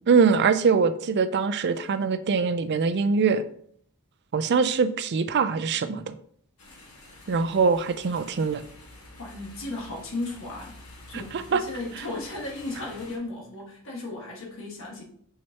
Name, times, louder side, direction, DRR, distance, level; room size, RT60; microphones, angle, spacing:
voice 1, 0.1-3.4 4.3-6.1 7.3-8.6 11.1-11.6, right 5 dB, 50° right, 11 dB, 0.5 m, -23 dB
sound 1, 6.6-13.2, left 2 dB, 90° left, 1.7 m, -48 dB
voice 2, 9.2-10.7 11.1-15.0, left 2 dB, 65° left, -1 dB, 1.7 m, -35 dB
6.3 x 5.8 x 2.9 m, 0.62 s
head